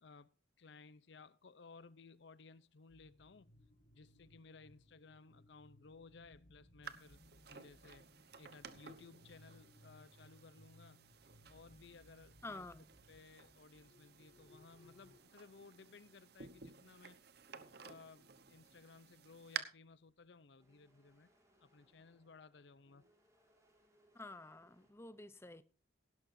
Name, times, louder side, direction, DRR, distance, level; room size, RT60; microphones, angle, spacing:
voice 1, 0.0-3.5 3.9-7.2 7.5-8.1 8.4-11.1 11.5-12.7 13.1-17.3 17.5-21.3 21.6-23.1, left 4 dB, 60° left, 0.6 m, -59 dB
sound 1, 2.9-15.2, left 1 dB, 40° left, 2.0 m, -65 dB
sound 2, 6.8-19.6, right 7 dB, 55° right, 1.0 m, -53 dB
voice 2, 12.4-12.9 24.1-25.6, left 2 dB, 15° left, 0.6 m, -50 dB
sound 3, 14.4-24.9, equal, 15° right, 3.4 m, -76 dB
17.5 x 12.0 x 2.7 m
head